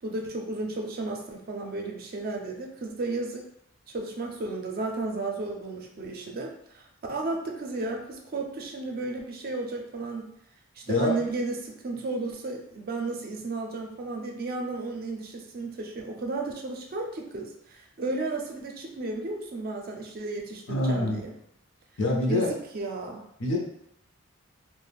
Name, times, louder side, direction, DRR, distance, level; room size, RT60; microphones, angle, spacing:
voice 1, 0.0-3.4 3.9-10.3 10.8-21.3 22.3-23.3, right 3 dB, 45° right, 2 dB, 0.4 m, -33 dB
voice 2, 20.7-21.2 22.0-22.5 23.4-23.6, left 2 dB, 60° left, 0 dB, 0.6 m, -25 dB
2.4 x 2.0 x 3.3 m, 0.74 s
head